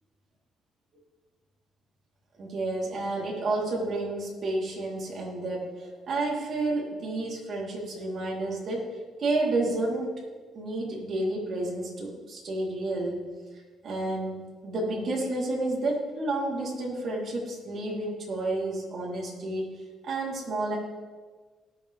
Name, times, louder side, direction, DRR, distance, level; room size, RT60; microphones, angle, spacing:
voice 1, 2.4-8.9 9.2-10.1 10.5-13.3 13.8-20.8, right 2 dB, 55° right, -3 dB, 3.4 m, -30 dB
19.5 x 7.6 x 3.5 m, 1.4 s
cardioid pair, 90°, 0 cm